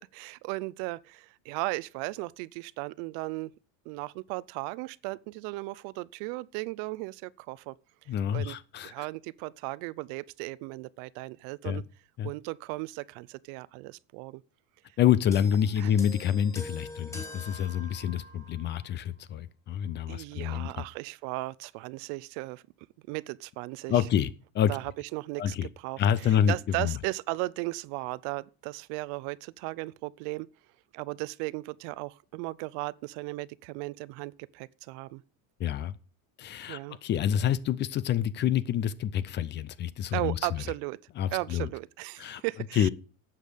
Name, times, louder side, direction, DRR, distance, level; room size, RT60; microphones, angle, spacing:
voice 1, 0.1-3.5 3.9-7.7 8.3-8.6 8.8-11.8 12.2-14.4 15.8-15.9 20.1-22.6 23.1-24.0 24.7-26.0 26.5-30.5 30.9-35.2 36.7-37.0 40.1-41.0 41.3-42.9, right 22 dB, 55° right, 0.5 m, -36 dB
voice 2, 8.1-9.1 11.6-11.8 12.2-12.3 15.0-20.8 23.9-24.3 24.5-24.8 25.4-25.7 26.0-27.0 35.6-35.9 36.4-40.6 41.2-41.7 42.2-42.4 42.8-42.9, left 9 dB, 25° left, 0.5 m, -27 dB
sound 1, 15.3-18.9 19.8-20.0, left 1 dB, 5° left, 2.5 m, -45 dB
12.0 x 8.3 x 5.0 m
cardioid pair, 155°, 41 cm